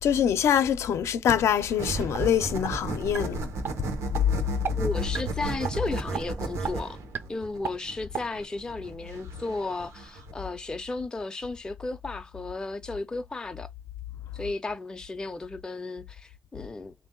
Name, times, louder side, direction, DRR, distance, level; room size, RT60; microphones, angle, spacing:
voice 1, 0.0-3.4, left 9 dB, 75° left, 0.5 m, -24 dB
sound 1, 1.5-2.3 2.6-2.7 3.1-3.2 3.6-3.7 4.1-4.2 4.6-4.7 5.1-5.3 5.6-5.8 6.1-6.2 6.6-6.7 7.1-7.2 7.6-7.7 8.1-8.2, right 7 dB, 50° right, 0.5 m, -32 dB
sound 2, 1.8-10.3, right 3 dB, 85° right, 0.9 m, -34 dB
voice 2, 4.7-7.0 7.3-13.7 14.3-16.9, left 3 dB, 15° left, 0.4 m, -34 dB
3.7 x 2.6 x 3.6 m
wide cardioid pair, 160°, 5 cm